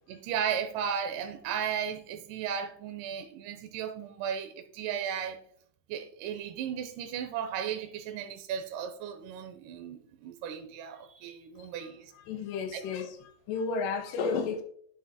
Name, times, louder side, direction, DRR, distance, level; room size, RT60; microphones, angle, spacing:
voice 1, 0.1-5.4 5.9-12.1 12.7-12.8, right 8 dB, 80° right, 7 dB, 2.2 m, -35 dB
voice 2, 11.8-14.6, left 5 dB, 80° left, 6 dB, 2.4 m, -33 dB
10.5 x 5.1 x 2.8 m, 0.62 s
omnidirectional pair, 4.0 m